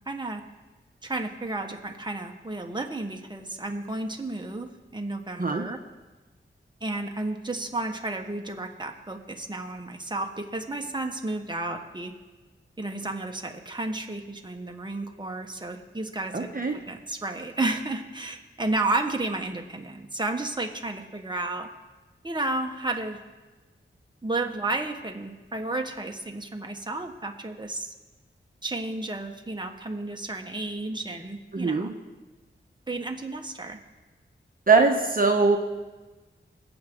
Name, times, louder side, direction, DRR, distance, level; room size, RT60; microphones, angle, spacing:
voice 1, 0.1-0.4 1.0-5.8 6.8-12.1 12.8-16.5 16.9-21.7 22.2-23.2 24.2-27.9 28.6-31.9 32.9-33.8, right 2 dB, 20° right, 3 dB, 1.3 m, -32 dB
voice 2, 16.3-16.7 31.5-31.9 34.7-35.6, right 4 dB, 45° right, 2 dB, 1.1 m, -21 dB
21.0 x 8.0 x 3.8 m, 1.2 s
cardioid pair, 50°, 21 cm